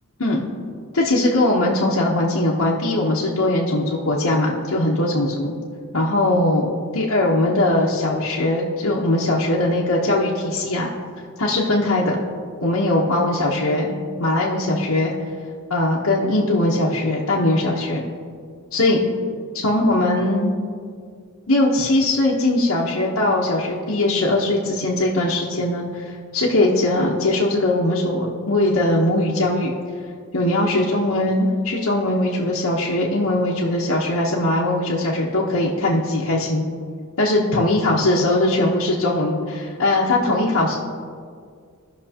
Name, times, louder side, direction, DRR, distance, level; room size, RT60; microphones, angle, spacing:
voice 1, 0.9-5.5 5.9-6.7 6.9-10.9 11.4-12.2 12.6-13.9 14.2-15.1 15.7-18.0 18.7-19.0 19.5-20.5 21.5-29.7 30.3-36.6 37.2-40.8, left 1 dB, 75° left, -6 dB, 1.0 m, -20 dB
17.0 x 6.0 x 2.9 m, 2.1 s
head